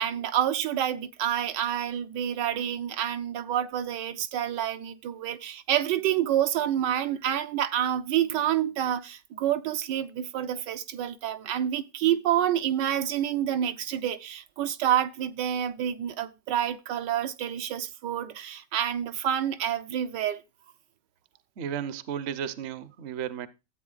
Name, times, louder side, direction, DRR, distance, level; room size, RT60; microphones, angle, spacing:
voice 1, 0.0-20.4, right 10 dB, 80° right, 1.4 m, -28 dB
voice 2, 21.6-23.5, right 8 dB, 55° right, 0.7 m, -34 dB
13.5 x 8.1 x 2.4 m
omnidirectional pair, 1.9 m